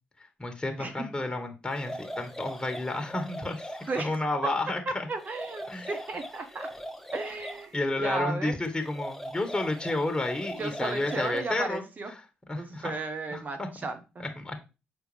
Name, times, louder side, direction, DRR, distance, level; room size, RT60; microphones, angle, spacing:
voice 1, 0.2-5.1 5.7-5.9 7.7-11.8 12.1-12.2 12.5-12.9 13.3-13.7 14.2-14.6, left 2 dB, 20° left, 5 dB, 1.7 m, -31 dB
sound 1, 1.7-4.2 5.2-7.7 8.8-11.4, equal, 5° left, 1.1 m, -40 dB
voice 2, 4.9-6.7 7.1-8.5 10.6-12.1 12.5-14.2, right 3 dB, 45° right, 7 dB, 1.4 m, -35 dB
6.6 x 4.4 x 3.4 m, 0.29 s
hypercardioid pair, 45°, 4 cm